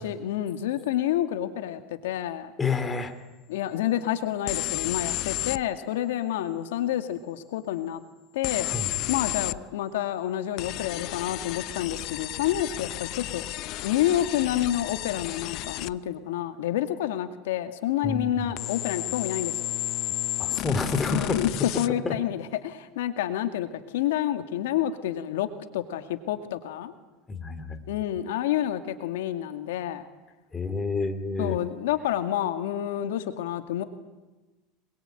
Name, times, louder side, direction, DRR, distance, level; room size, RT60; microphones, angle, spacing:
voice 1, 0.0-2.5 3.5-8.0 8.3-8.7 9.1-13.4 13.8-19.7 21.1-25.5 25.7-26.9 27.9-30.1 31.4-33.8, left 12 dB, 85° left, 9 dB, 2.2 m, -28 dB
voice 2, 2.6-3.1 8.6-8.9 18.0-18.5 20.4-21.4 22.0-22.1 27.3-27.8 30.5-31.6, left 3 dB, 15° left, 8 dB, 3.0 m, -29 dB
sound 1, 4.5-5.6 8.4-9.6 10.6-15.9 18.6-21.9, left 17 dB, 50° left, 0.8 m, -32 dB
26.5 x 22.0 x 9.2 m, 1.2 s
supercardioid pair, 130°, 0 cm